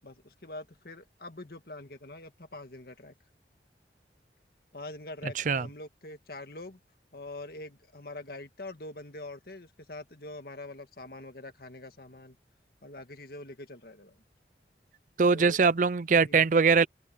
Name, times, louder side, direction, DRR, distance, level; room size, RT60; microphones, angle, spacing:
voice 1, 0.0-3.1 4.7-6.8 7.1-12.4 12.8-14.2 15.3-15.6 16.2-16.4, left 2 dB, 55° left, 1.8 m, -44 dB
voice 2, 5.4-5.7 15.2-16.9, right 5 dB, 45° right, 0.5 m, -22 dB
open air
head